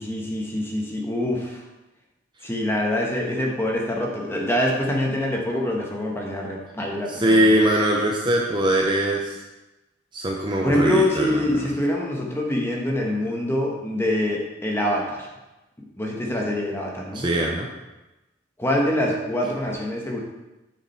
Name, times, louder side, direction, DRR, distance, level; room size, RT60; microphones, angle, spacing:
voice 1, 0.0-1.6 2.4-7.5 10.6-15.3 16.0-17.3 18.6-20.2, left 1 dB, 10° left, -1 dB, 1.3 m, -25 dB
voice 2, 7.1-9.4 10.1-11.4 17.1-17.7, right 1 dB, 25° right, -1 dB, 0.7 m, -21 dB
9.9 x 5.0 x 4.4 m, 1.0 s
head